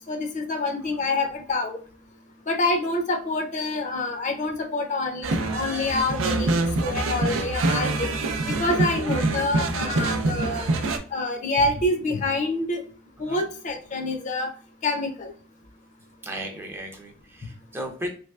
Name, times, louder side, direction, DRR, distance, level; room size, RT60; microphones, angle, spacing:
voice 1, 0.1-1.8 2.5-6.5 6.8-8.1 8.6-10.7 11.1-12.8 13.2-14.5 14.8-15.3, left 2 dB, 40° left, 5 dB, 0.5 m, -26 dB
sound 1, 5.2-11.0, right 2 dB, 75° right, 0.5 m, -25 dB
voice 2, 16.2-18.1, equal, 10° right, 2 dB, 0.4 m, -35 dB
3.3 x 3.1 x 2.3 m, 0.43 s
head